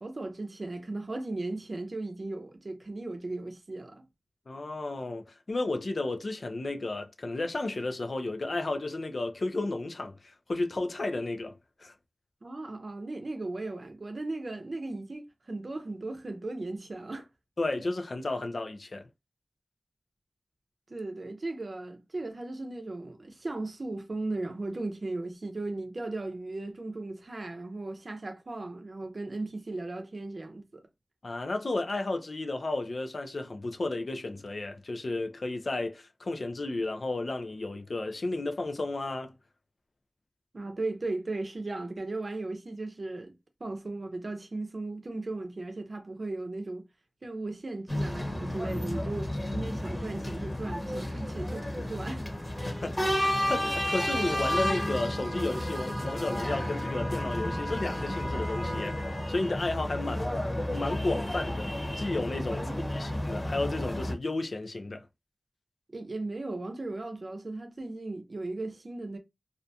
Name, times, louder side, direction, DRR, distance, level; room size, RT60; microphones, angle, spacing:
voice 1, 0.0-4.1 12.4-17.3 20.9-30.8 40.5-46.9 47.2-52.2 62.5-63.3 65.9-69.2, right 2 dB, 65° right, 0.6 m, -37 dB
voice 2, 4.5-11.9 17.6-19.1 31.2-39.3 52.7-59.0 59.3-65.1, left 2 dB, 75° left, 0.4 m, -33 dB
sound 1, 47.9-64.1, left 1 dB, 25° left, 0.9 m, -32 dB
2.4 x 2.2 x 2.6 m
wide cardioid pair, 55°, 0 cm